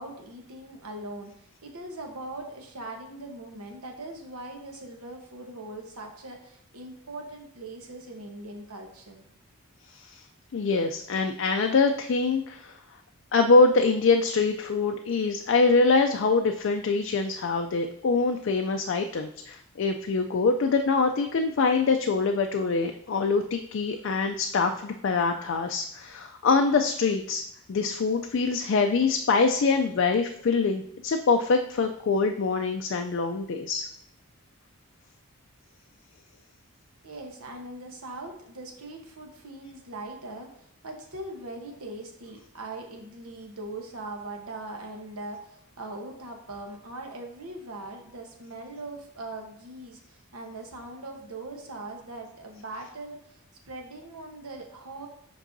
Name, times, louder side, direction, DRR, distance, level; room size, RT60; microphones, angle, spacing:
voice 1, 0.0-1.3 1.6-9.2 37.0-55.1, right 2 dB, 85° right, 2 dB, 1.1 m, -41 dB
voice 2, 10.5-12.7 13.3-27.4 27.7-33.9, left 4 dB, 55° left, 5 dB, 0.3 m, -24 dB
7.3 x 5.3 x 2.6 m, 0.70 s
head